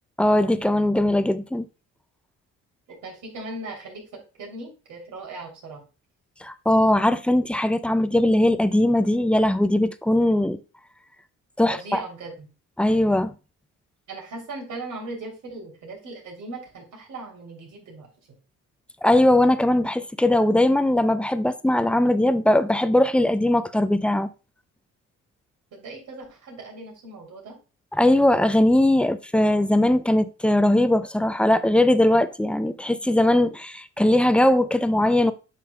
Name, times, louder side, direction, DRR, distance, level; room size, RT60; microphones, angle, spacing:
voice 1, 0.2-1.7 6.4-10.6 11.6-12.0 12.8-13.3 19.0-24.3 27.9-35.3, left 1 dB, 5° left, 0.5 m, -20 dB
voice 2, 3.0-5.8 11.7-12.5 14.1-18.1 25.7-27.5, right 2 dB, 75° right, 3.2 m, -38 dB
8.6 x 6.0 x 2.3 m
cardioid pair, 90°, 30 cm